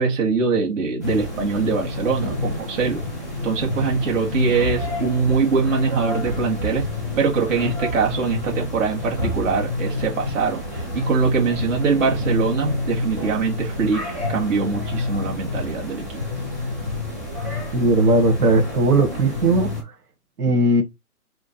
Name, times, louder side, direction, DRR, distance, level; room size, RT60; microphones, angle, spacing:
voice 1, 0.0-3.0 3.4-6.9 7.2-14.0 14.3-16.1, right 5 dB, 55° right, 2.0 m, -22 dB
sound 1, 1.0-19.8, left 2 dB, 15° right, 0.4 m, -28 dB
voice 2, 17.7-19.7 20.4-20.8, right 2 dB, 90° right, 1.9 m, -18 dB
4.9 x 2.5 x 4.2 m
hypercardioid pair, 155°, 45 cm